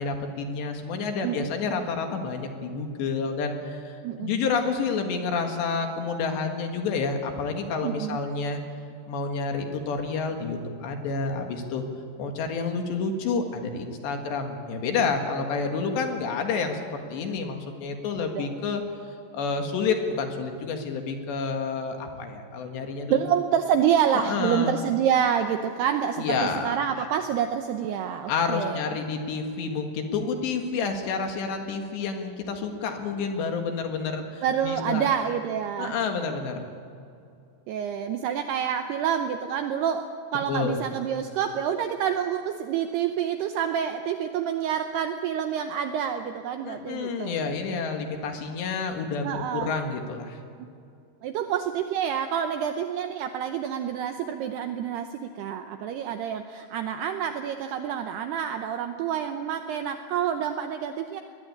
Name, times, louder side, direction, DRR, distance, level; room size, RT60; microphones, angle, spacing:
voice 1, 0.0-8.6 9.1-11.8 12.2-18.8 19.3-23.3 24.1-24.8 26.2-27.1 28.3-35.1 35.8-36.7 40.5-40.8 46.6-50.4, left 4 dB, 65° left, 4 dB, 3.6 m, -29 dB
voice 2, 7.8-8.2 18.3-18.5 23.1-26.2 26.6-28.8 34.4-35.9 37.7-47.4 49.2-49.7 51.2-61.2, right 8 dB, 85° right, 7 dB, 2.4 m, -27 dB
22.0 x 20.0 x 8.8 m, 2.5 s
omnidirectional pair, 5.7 m